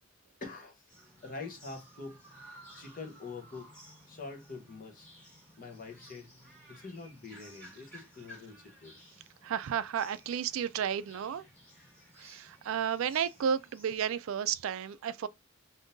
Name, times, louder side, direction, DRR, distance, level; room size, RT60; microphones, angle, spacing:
voice 1, 0.4-0.9 1.2-2.2 2.7-3.7 4.1-5.1 5.6-6.3 6.7-9.0, left 3 dB, 40° left, 0.9 m, -45 dB
sound 1, 0.9-14.0, equal, 5° left, 1.9 m, -56 dB
voice 2, 9.4-11.4 12.2-15.3, right 8 dB, 75° right, 0.3 m, -32 dB
3.6 x 2.7 x 2.5 m
head